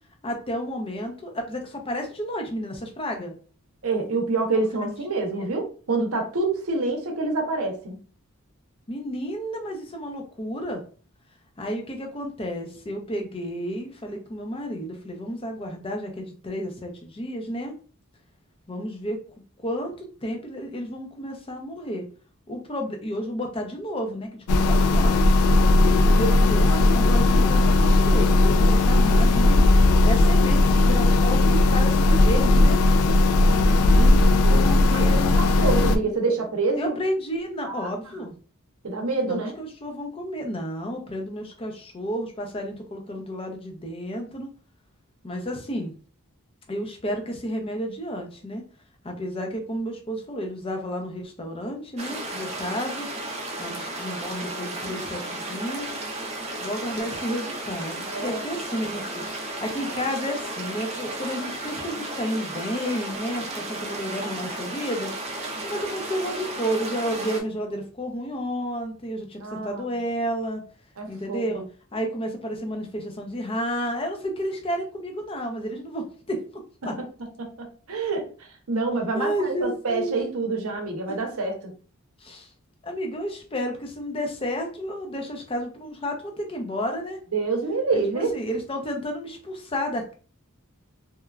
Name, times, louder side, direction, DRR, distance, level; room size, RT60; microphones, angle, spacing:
voice 1, 0.2-3.3 8.9-10.8 11.6-17.7 18.7-19.2 19.6-22.0 22.5-25.4 25.9-29.6 30.0-32.8 33.9-36.1 36.8-38.3 39.2-44.5 45.2-45.9 46.7-48.6 49.0-53.1 53.6-55.9 56.6-65.1 65.6-70.6 71.1-71.6 71.9-76.4 76.8-76.9 79.1-80.2 82.2-82.5 82.8-87.2 88.1-90.1, equal, 25° left, 3 dB, 0.5 m, -31 dB
voice 2, 3.8-8.0 33.4-34.6 34.9-37.0 37.6-37.9 38.8-39.5 58.1-58.4 69.4-69.8 71.0-71.6 77.0-77.1 77.4-78.3 78.7-81.7 87.3-88.3, right 3 dB, 75° right, 3 dB, 0.7 m, -27 dB
sound 1, 24.5-36.0, left 2 dB, 85° left, 0.3 m, -17 dB
sound 2, 52.0-67.4, right 2 dB, 30° right, 0.5 m, -34 dB
3.0 x 2.2 x 2.3 m, 0.39 s
head